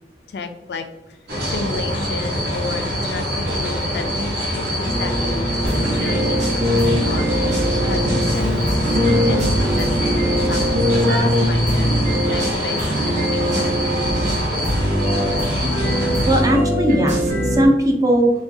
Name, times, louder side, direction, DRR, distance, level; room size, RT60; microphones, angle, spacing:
voice 1, 0.3-1.2 1.5-7.3 7.9-9.5 9.8-11.9 12.3-13.7, left 4 dB, 65° left, 7 dB, 0.4 m, -32 dB
sound 1, 1.3-16.4, equal, 65° right, 1.5 m, -24 dB
Keyboard (musical), 4.8-12.4, left 1 dB, 85° right, 0.8 m, -22 dB
sound 2, 5.6-11.0 11.6-17.6, right 1 dB, 40° right, 0.9 m, -23 dB
voice 2, 15.9-18.3, right 1 dB, 20° right, 2 dB, 0.5 m, -18 dB
4.6 x 2.3 x 2.7 m, 0.94 s
head